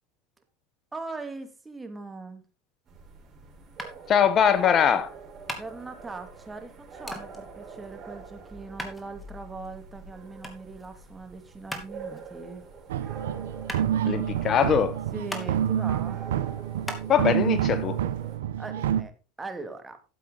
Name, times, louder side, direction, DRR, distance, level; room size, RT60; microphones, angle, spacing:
voice 1, 0.9-2.4 5.5-12.6 15.1-16.2 18.6-19.1 19.4-20.0, right 3 dB, 15° right, 2.3 m, -40 dB
sound 1, 2.9-18.4, right 4 dB, 35° right, 5.8 m, -45 dB
sound 2, 3.8-17.0, left 1 dB, 10° left, 2.5 m, -42 dB
voice 2, 4.1-5.1 14.0-15.0 17.1-18.0, left 8 dB, 40° left, 1.0 m, -22 dB
sound 3, 12.9-19.0, right 10 dB, 85° right, 0.8 m, -28 dB
13.0 x 7.6 x 3.9 m
hypercardioid pair, 105°, 0 cm